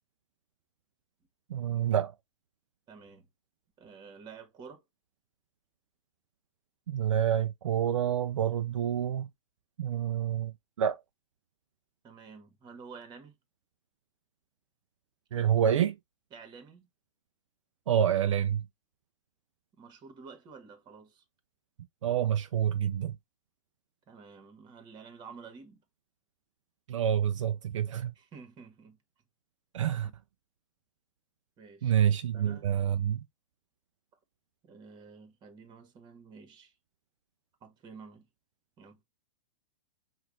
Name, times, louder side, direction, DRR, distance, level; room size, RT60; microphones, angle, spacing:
voice 1, 1.5-2.1 6.9-9.3 9.8-11.0 15.3-15.9 17.9-18.6 22.0-23.2 26.9-28.1 29.7-30.1 31.8-33.2, right 9 dB, 75° right, 0.4 m, -28 dB
voice 2, 2.9-3.3 3.8-4.8 12.0-13.4 16.3-16.9 19.7-21.2 24.1-25.8 28.1-29.0 29.9-30.1 31.6-32.0 32.3-32.7 34.6-36.7 37.6-38.3 38.8-39.0, right 5 dB, 25° right, 1.5 m, -50 dB
5.7 x 2.5 x 3.6 m
hypercardioid pair, 115°, 16 cm